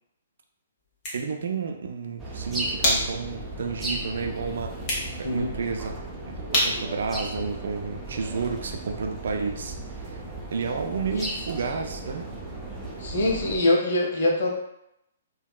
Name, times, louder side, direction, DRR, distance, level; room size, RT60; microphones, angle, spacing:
sound 1, 0.8-8.2, left 1 dB, 30° left, 1.0 m, -32 dB
voice 1, 1.1-4.8 5.2-10.2 10.5-12.3, right 5 dB, 60° right, 3 dB, 0.4 m, -31 dB
sound 2, 2.2-13.6, right 2 dB, 5° right, 0.6 m, -36 dB
voice 2, 13.0-14.5, left 1 dB, 55° left, -1 dB, 0.7 m, -23 dB
3.4 x 2.3 x 2.3 m, 0.81 s
figure-of-eight pair, 125°, 0 cm